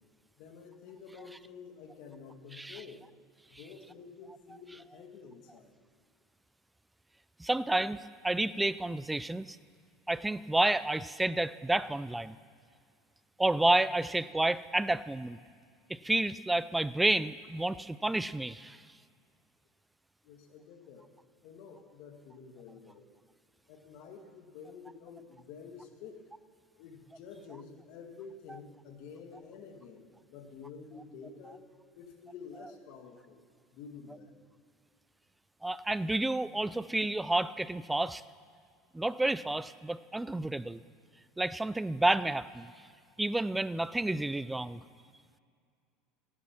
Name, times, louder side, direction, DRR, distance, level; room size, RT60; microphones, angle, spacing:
voice 1, 0.4-3.0 3.5-5.7 20.2-21.1 21.4-23.1 23.7-26.2 26.8-31.7 31.9-33.4 33.7-34.4, left 5 dB, 65° left, 5 dB, 1.9 m, -49 dB
voice 2, 7.4-9.6 10.1-12.4 13.4-15.4 15.9-18.8 35.6-38.2 38.9-40.8 41.4-42.7 43.2-44.8, right 2 dB, 10° right, 17 dB, 0.3 m, -30 dB
16.5 x 10.0 x 5.9 m, 2.1 s
supercardioid pair, 110°, 0 cm